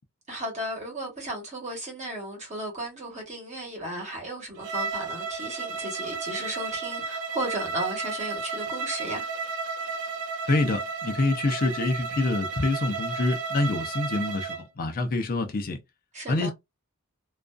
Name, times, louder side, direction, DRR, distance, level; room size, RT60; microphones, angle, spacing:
voice 1, 0.3-9.3 16.1-16.5, right 1 dB, 30° right, 1.1 m, -35 dB
Bowed string instrument, 4.6-14.6, right 4 dB, 65° right, 0.5 m, -33 dB
voice 2, 10.5-15.8 16.3-16.5, left 2 dB, 40° left, 0.5 m, -26 dB
2.5 x 2.3 x 2.2 m
head